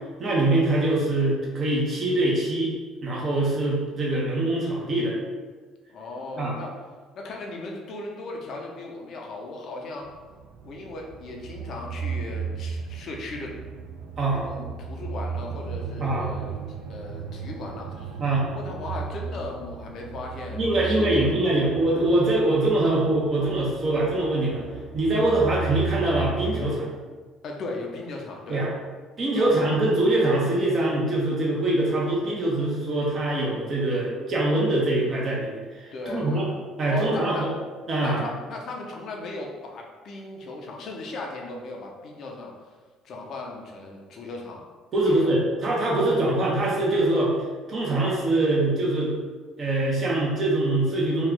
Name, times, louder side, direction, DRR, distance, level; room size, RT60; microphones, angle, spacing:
voice 1, 0.2-2.7 3.0-5.1 6.4-6.5 14.2-14.5 16.0-16.3 18.2-18.4 20.6-24.6 24.9-26.9 28.5-28.7 29.2-36.4 36.8-37.4 37.9-38.2 44.9-47.3 47.7-49.1 49.6-51.3, right 2 dB, 45° right, -4 dB, 1.0 m, -23 dB
voice 2, 5.9-6.8 7.2-10.1 10.6-13.5 14.4-16.6 16.9-18.1 18.5-21.7 27.4-28.7 29.4-29.6 35.9-36.6 36.9-37.5 38.0-42.5 43.0-44.6 45.0-45.3, left 2 dB, 60° left, 0 dB, 0.7 m, -37 dB
sound 1, 10.0-26.7, right 5 dB, 80° right, 0.4 m, -35 dB
3.1 x 2.4 x 3.7 m, 1.4 s
supercardioid pair, 70°, 0 cm